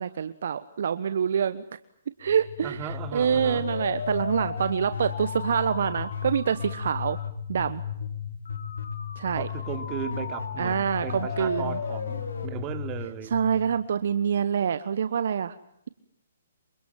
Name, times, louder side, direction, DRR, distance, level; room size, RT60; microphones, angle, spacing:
voice 1, 0.0-1.6 2.2-7.2 7.5-7.8 9.2-9.5 10.6-11.8 13.3-15.6, right 7 dB, 60° right, 1.1 m, -26 dB
sound 1, 2.3-14.1, left 7 dB, 70° left, 4.0 m, -34 dB
voice 2, 2.6-3.7 9.3-13.3, right 10 dB, 25° right, 3.0 m, -36 dB
28.0 x 24.5 x 7.4 m
figure-of-eight pair, 135°, 0 cm